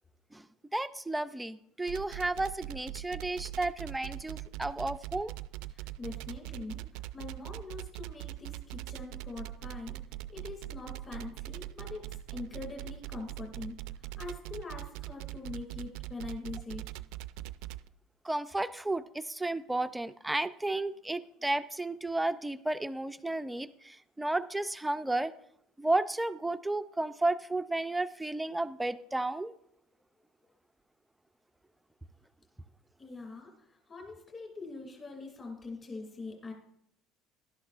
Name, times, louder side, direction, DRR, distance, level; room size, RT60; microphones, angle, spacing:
voice 1, 0.7-5.3 18.2-25.3 25.8-29.6, right 2 dB, 5° right, 11 dB, 0.4 m, -33 dB
sound 1, 1.9-17.9, right 15 dB, 80° right, 0.4 m, -41 dB
voice 2, 5.7-10.0 10.3-16.8 33.0-36.5, left 3 dB, 25° left, 1 dB, 2.3 m, -43 dB
18.0 x 11.5 x 2.5 m, 0.75 s
cardioid pair, 165°, 0 cm